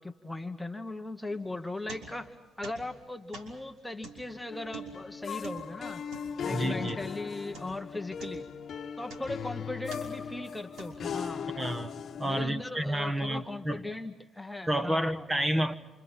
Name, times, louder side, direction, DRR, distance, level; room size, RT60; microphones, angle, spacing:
voice 1, 0.0-6.0 6.4-8.5 9.0-11.5 12.2-15.3, left 2 dB, 5° left, 1.2 m, -38 dB
sound 1, 1.3-2.4 2.6-7.2 7.5-7.9 8.2-9.5 9.9-10.3 10.8-11.3, right 4 dB, 75° right, 6.0 m, -47 dB
sound 2, 4.5-12.4, left 7 dB, 55° left, 1.1 m, -38 dB
voice 2, 6.5-7.0 11.6-13.8 14.7-15.7, right 1 dB, 15° right, 1.5 m, -30 dB
28.5 x 27.5 x 5.7 m
cardioid pair, 90°, 0 cm